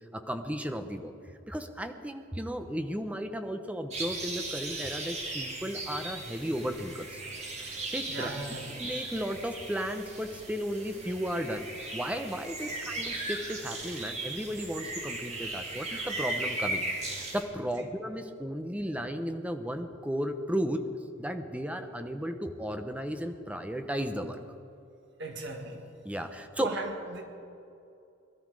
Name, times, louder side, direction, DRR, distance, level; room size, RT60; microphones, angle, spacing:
voice 1, 0.1-1.1 1.5-7.2 7.6-8.3 8.7-20.8 21.2-24.4 26.0-26.7, equal, 5° right, 7 dB, 0.9 m, -34 dB
sound 1, 3.9-17.4, right 2 dB, 35° right, 2.5 m, -37 dB
voice 2, 8.1-8.6 12.7-12.8 25.2-25.8 26.6-27.2, right 2 dB, 60° right, 2 dB, 2.0 m, -37 dB
21.5 x 12.5 x 4.9 m, 2.6 s
head